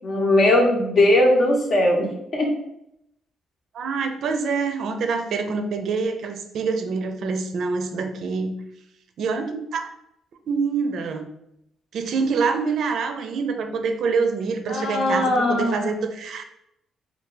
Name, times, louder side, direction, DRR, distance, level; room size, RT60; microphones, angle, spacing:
voice 1, 0.0-2.5 14.7-16.0, left 1 dB, 50° left, 0 dB, 0.8 m, -19 dB
voice 2, 3.7-8.5 9.2-9.9 10.5-11.3 11.9-16.4, right 4 dB, 65° right, 6 dB, 0.4 m, -26 dB
2.6 x 2.3 x 3.8 m, 0.79 s
cardioid pair, 90°, 0 cm